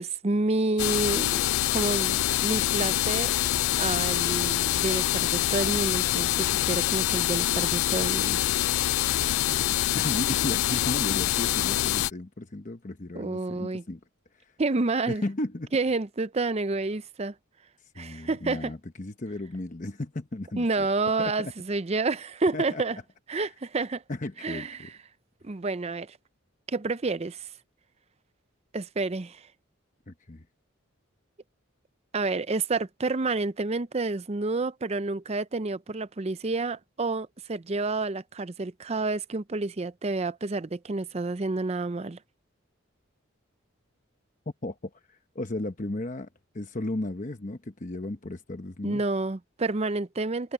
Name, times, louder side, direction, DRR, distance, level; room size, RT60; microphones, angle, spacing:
voice 1, 0.0-3.3 3.8-8.4 13.2-13.8 14.6-15.2 15.7-17.3 18.0-18.7 20.6-23.0 23.3-24.0 24.4-24.9 25.4-26.2 26.7-27.5 28.7-29.4 32.1-42.2 48.8-50.5, right 3 dB, 30° right, 0.5 m, -29 dB
sound 1, 0.8-12.1, left 13 dB, 85° left, 0.4 m, -25 dB
voice 2, 9.2-14.0 14.3-14.5 15.1-15.7 17.9-20.9 21.2-21.5 22.5-22.8 23.3-23.5 24.1-24.9 30.1-30.4 44.6-46.3 46.5-49.0, left 1 dB, 40° left, 1.0 m, -35 dB
head